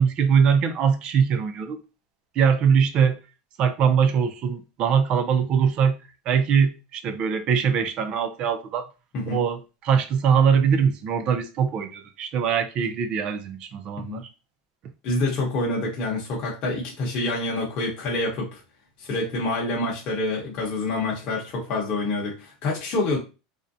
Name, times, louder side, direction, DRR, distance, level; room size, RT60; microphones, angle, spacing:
voice 1, 0.0-1.8 2.4-3.2 3.6-6.0 6.3-8.9 9.3-14.3, right 7 dB, 40° right, 0.4 m, -22 dB
voice 2, 9.1-9.5 14.0-14.2 15.0-18.6 19.0-23.2, left 2 dB, 40° left, 0.9 m, -27 dB
2.5 x 2.1 x 2.6 m
supercardioid pair, 145°, 2 cm